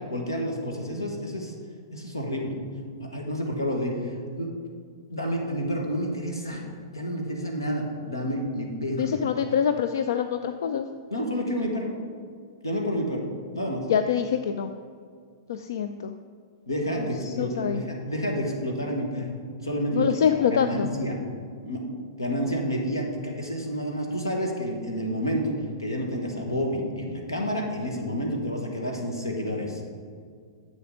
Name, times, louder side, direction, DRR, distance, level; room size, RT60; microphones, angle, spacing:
voice 1, 0.1-1.5 1.9-2.6 3.0-4.5 5.1-6.6 6.9-9.2 11.1-11.9 12.6-13.3 13.5-13.9 16.7-21.2 21.6-21.8 22.2-25.5 25.8-29.8, equal, 85° left, 1 dB, 1.5 m, -29 dB
voice 2, 9.0-10.9 13.9-14.7 15.5-16.1 17.3-17.8 19.9-20.9, left 8 dB, 65° left, 9 dB, 0.4 m, -25 dB
9.8 x 7.2 x 3.8 m, 2.2 s
figure-of-eight pair, 105°, 2 cm